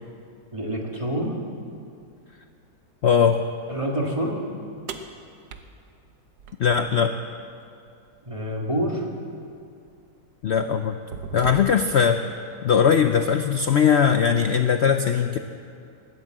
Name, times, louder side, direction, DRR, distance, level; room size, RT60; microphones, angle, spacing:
voice 1, 0.5-1.4 3.7-4.4 8.2-9.1, equal, 20° right, -1 dB, 1.7 m, -27 dB
voice 2, 3.0-3.4 6.6-7.1 10.4-11.0 11.3-12.2 12.6-15.4, left 7 dB, 75° left, 8 dB, 0.6 m, -20 dB
sound 1, 4.9-7.1 8.9-9.0 9.9-10.1 10.6-12.1, right 6 dB, 75° right, 1.4 m, -39 dB
19.5 x 9.7 x 7.6 m, 2.4 s
omnidirectional pair, 1.8 m